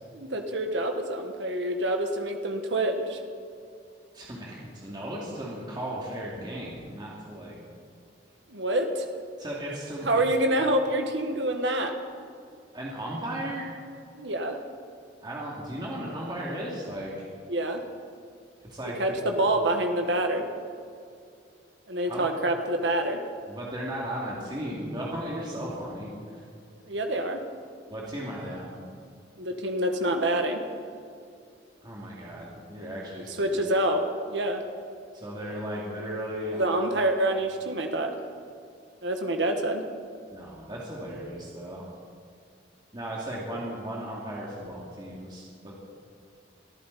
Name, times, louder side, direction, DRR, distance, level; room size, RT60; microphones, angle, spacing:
voice 1, 0.1-3.2 8.5-9.2 10.0-11.9 14.1-14.6 17.5-17.8 19.0-20.4 21.9-23.2 26.9-27.4 29.4-30.6 33.4-34.6 36.6-38.1 39.0-39.8, right 1 dB, 75° right, 4 dB, 1.4 m, -27 dB
voice 2, 4.1-7.6 9.4-10.2 12.7-13.7 15.2-17.3 18.7-19.2 22.0-22.2 23.5-26.4 27.9-28.9 31.8-33.6 35.1-36.6 40.3-41.9 42.9-45.7, equal, 25° right, -5 dB, 2.7 m, -36 dB
23.5 x 14.5 x 4.2 m, 2.3 s
head